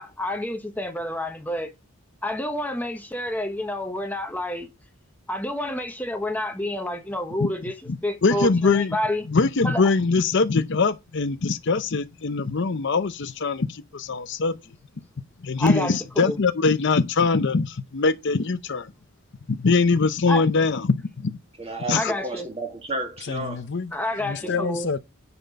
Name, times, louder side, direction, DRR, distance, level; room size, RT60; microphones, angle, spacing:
voice 1, 0.0-1.7 2.2-4.7 5.3-7.7 8.0-9.2 9.6-9.8 15.6-16.4 20.3-20.4 21.9-22.5 23.9-24.9, left 1 dB, 10° left, 1.0 m, -29 dB
voice 2, 7.9-9.0 9.3-14.6 15.4-18.9 19.5-21.4 21.9-22.1 23.3-23.9 24.2-25.0, left 4 dB, 60° left, 0.6 m, -23 dB
voice 3, 21.6-23.6 24.4-24.7, right 2 dB, 30° right, 2.1 m, -32 dB
10.0 x 4.3 x 5.2 m
head